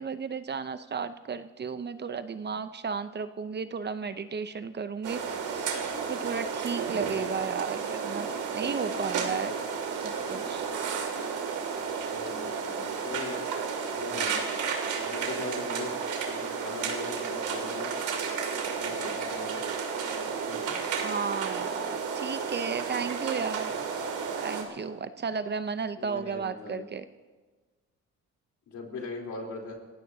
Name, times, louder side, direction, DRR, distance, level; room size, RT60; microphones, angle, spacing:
voice 1, 0.0-5.8 6.1-9.6 10.0-10.7 21.0-23.7 24.4-27.0, right 5 dB, 35° right, 11 dB, 0.7 m, -34 dB
sound 1, 5.0-24.6, right 5 dB, 80° right, 2.6 m, -32 dB
voice 2, 12.1-13.4 14.0-14.4 15.0-17.9 18.7-19.6 20.5-20.8 26.0-26.9 28.7-29.7, left 3 dB, 75° left, 0 dB, 3.7 m, -40 dB
28.0 x 16.0 x 2.8 m, 1.3 s
cardioid pair, 90°, 30 cm